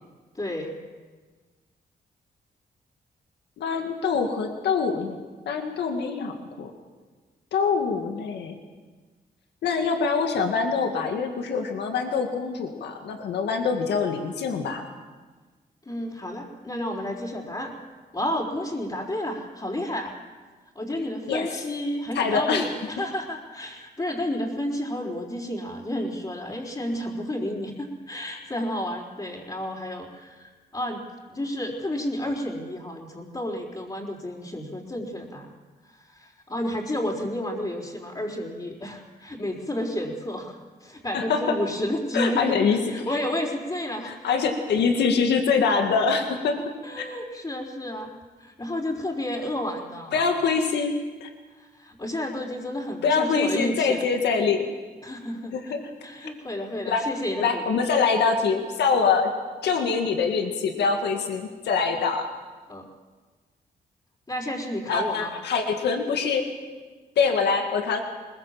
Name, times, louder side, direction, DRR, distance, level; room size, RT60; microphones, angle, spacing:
voice 1, 0.3-0.7 15.9-17.7 18.1-20.1 20.7-31.0 31.3-35.5 35.9-44.1 46.8-48.1 48.4-50.2 51.6-54.0 55.0-55.6 56.0-57.7 62.7-62.9 64.3-65.3, left 1 dB, 25° left, -6 dB, 4.2 m, -31 dB
voice 2, 3.6-5.2 5.5-6.7 7.5-8.6 9.6-14.8 21.3-21.6 22.2-22.7 41.1-41.6 42.1-42.8 44.0-46.6 47.0-47.1 50.1-50.9 51.2-51.3 53.0-54.7 55.5-55.9 56.9-57.1 57.4-59.3 59.6-62.3 64.9-66.5 67.2-68.0, left 5 dB, 90° left, 4 dB, 2.0 m, -24 dB
21.5 x 20.5 x 7.5 m, 1.4 s
cardioid pair, 70°, 17 cm